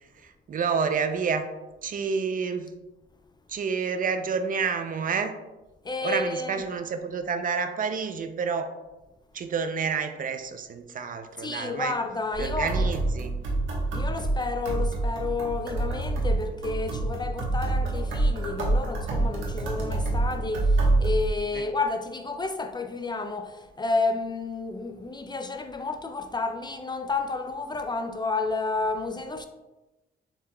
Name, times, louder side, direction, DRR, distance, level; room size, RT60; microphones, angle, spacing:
voice 1, 0.0-1.5 1.8-2.7 3.5-5.3 6.0-8.8 9.3-11.9 12.4-13.4 21.5-21.6, right 5 dB, 45° right, 0.5 m, -29 dB
voice 2, 5.8-6.6 11.4-12.9 13.9-29.5, left 3 dB, 20° left, 0.3 m, -31 dB
sound 1, 12.3-21.3, right 2 dB, 80° right, 1.2 m, -26 dB
7.1 x 2.9 x 2.2 m
cardioid pair, 90°, 20 cm